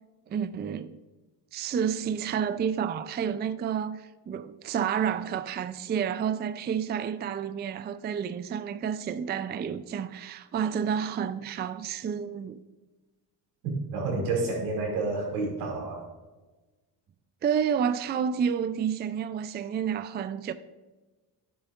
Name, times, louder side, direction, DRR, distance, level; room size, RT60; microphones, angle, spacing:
voice 1, 0.3-1.0 1.5-12.6 17.4-20.5, right 7 dB, 25° right, 0.4 m, -30 dB
voice 2, 13.6-16.1, right 3 dB, 90° right, 2.6 m, -29 dB
10.5 x 7.6 x 2.4 m
supercardioid pair, 70°, 47 cm